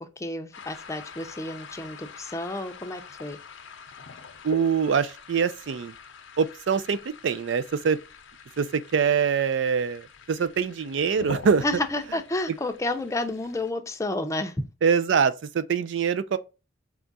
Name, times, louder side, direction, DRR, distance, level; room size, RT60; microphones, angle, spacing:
voice 1, 0.0-3.4 11.6-14.6, left 2 dB, 15° left, 0.5 m, -30 dB
sound 1, 0.5-13.7, left 5 dB, 80° left, 0.6 m, -45 dB
voice 2, 4.4-5.9 6.4-8.0 8.6-11.6 14.8-16.4, right 6 dB, 70° right, 0.4 m, -24 dB
4.4 x 2.4 x 3.9 m
head